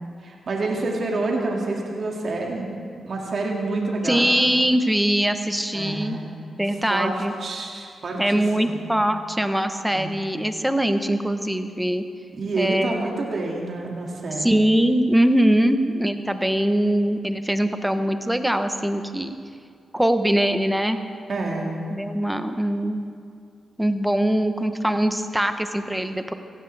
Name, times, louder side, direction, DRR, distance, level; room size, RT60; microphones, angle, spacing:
voice 1, 0.2-2.7 3.1-4.3 5.7-6.2 6.9-8.8 9.9-10.1 12.3-14.6 21.3-21.8, right 2 dB, 60° right, -1 dB, 2.1 m, -28 dB
voice 2, 4.0-6.2 6.6-7.3 8.2-12.0 12.6-13.1 14.4-19.3 19.9-21.0 21.9-23.1 23.8-26.3, right 1 dB, 5° right, 8 dB, 0.9 m, -22 dB
17.0 x 14.5 x 3.4 m, 2.3 s
cardioid pair, 70°, 0 cm